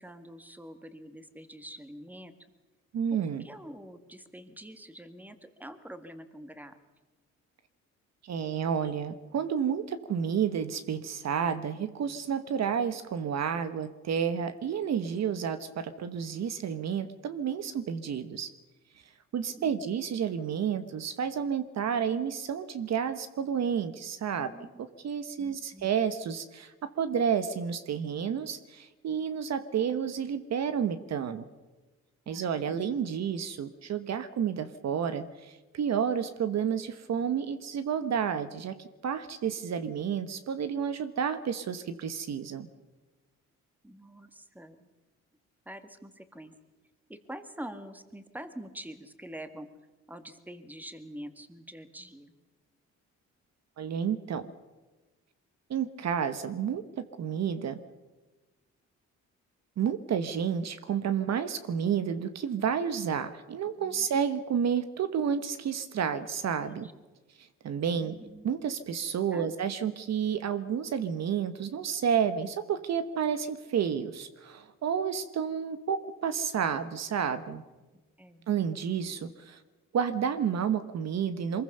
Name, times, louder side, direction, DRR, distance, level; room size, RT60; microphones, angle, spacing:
voice 1, 0.0-2.3 3.1-6.8 19.6-19.9 24.4-24.8 25.4-25.9 32.3-32.9 43.8-44.9 45.7-46.5 47.1-49.7 50.1-52.4 63.8-64.1 66.7-66.9 68.0-68.5 69.3-69.5 78.2-78.5, right 1 dB, 5° right, 9 dB, 1.9 m, -46 dB
voice 2, 2.9-3.4 8.2-18.5 19.3-24.5 24.8-31.5 32.3-42.7 53.8-54.5 55.7-57.8 59.8-66.9 67.6-68.1 68.4-77.6 78.5-79.6 79.9-81.6, right 7 dB, 60° right, 11 dB, 1.2 m, -30 dB
23.5 x 21.0 x 6.7 m, 1.2 s
cardioid pair, 90°, 30 cm